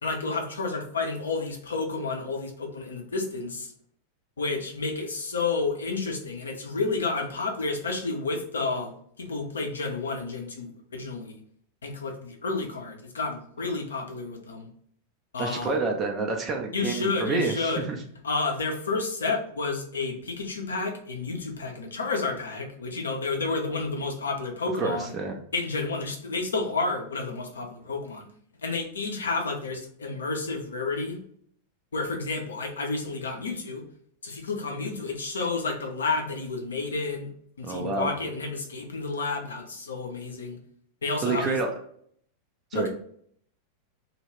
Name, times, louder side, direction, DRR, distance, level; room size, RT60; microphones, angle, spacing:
voice 1, 0.0-3.7 4.4-8.9 9.2-11.4 11.8-14.7 15.3-15.7 16.7-17.9 18.2-25.1 25.5-28.3 28.6-31.2 31.9-33.8 34.2-37.3 37.6-40.6 41.0-41.6 42.7-42.9, left 3 dB, 70° left, 2 dB, 0.5 m, -30 dB
voice 2, 15.4-18.0 24.8-25.4 37.6-38.1 41.2-41.7 42.7-42.9, right 4 dB, 25° right, 2 dB, 0.4 m, -28 dB
2.2 x 2.0 x 3.2 m, 0.63 s
figure-of-eight pair, 90°, 0 cm